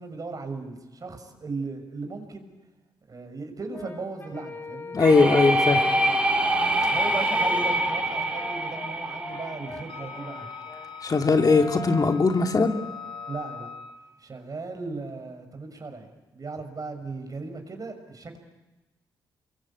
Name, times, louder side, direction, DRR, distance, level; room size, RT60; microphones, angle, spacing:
voice 1, 0.0-2.5 3.1-5.5 5.8-6.2 6.8-10.5 13.3-13.7 14.2-18.4, right 3 dB, 40° right, 6 dB, 6.4 m, -37 dB
Brass instrument, 3.7-6.2 6.8-13.8, left 1 dB, 25° left, 5.9 m, -42 dB
voice 2, 4.9-5.8 6.8-6.9 11.0-12.8, left 4 dB, 45° left, 5 dB, 2.5 m, -20 dB
sound 1, 5.0-10.6, right 1 dB, 15° right, 6.8 m, -25 dB
Wind instrument woodwind instrument, 9.9-14.1, left 7 dB, 70° left, 3.4 m, -41 dB
28.5 x 23.0 x 8.8 m, 1.1 s
supercardioid pair, 60°, 9 cm